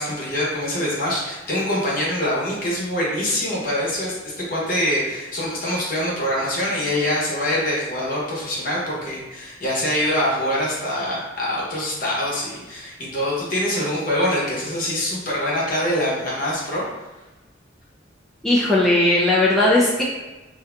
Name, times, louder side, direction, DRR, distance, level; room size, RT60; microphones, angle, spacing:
voice 1, 0.0-16.8, left 1 dB, 50° left, -5 dB, 0.9 m, -24 dB
voice 2, 18.4-20.0, left 1 dB, ahead, -8 dB, 0.3 m, -17 dB
2.7 x 2.2 x 3.7 m, 1.1 s
head